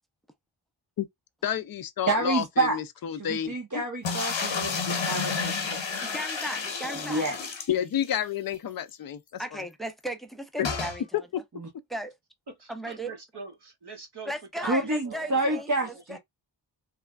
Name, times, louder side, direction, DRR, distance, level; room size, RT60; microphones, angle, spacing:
voice 1, 1.4-3.5 7.7-9.6 10.6-10.7, left 9 dB, 45° left, 0.5 m, -30 dB
voice 2, 2.1-2.8 3.2-5.6 6.9-7.3 14.6-16.2, right 2 dB, 35° right, 0.9 m, -28 dB
sound 1, 4.0-8.2 8.6-8.7 8.9-9.0 10.6-11.0, left 5 dB, 65° left, 0.9 m, -31 dB
voice 3, 6.0-7.2 9.4-11.1 11.9-12.1 12.7-13.1 14.2-15.7 16.1-16.2, right 1 dB, ahead, 0.6 m, -36 dB
voice 4, 12.6-16.0, right 4 dB, 55° right, 1.3 m, -44 dB
3.2 x 2.1 x 2.3 m
cardioid pair, 45°, 49 cm